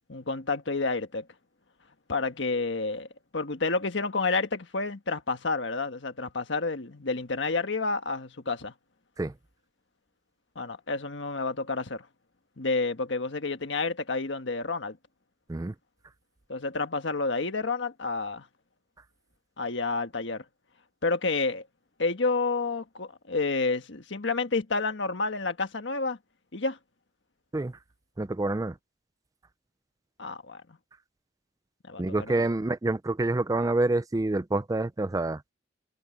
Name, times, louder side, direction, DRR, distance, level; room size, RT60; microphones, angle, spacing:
voice 1, 0.1-1.3 2.1-3.1 3.3-8.7 10.5-12.1 12.6-15.0 16.5-18.4 19.6-20.4 21.0-21.6 22.0-26.2 26.5-26.8 30.2-30.6 31.9-32.0, left 3 dB, 70° left, 1.5 m, -29 dB
voice 2, 28.2-28.8 32.0-35.4, right 2 dB, 20° right, 0.4 m, -27 dB
head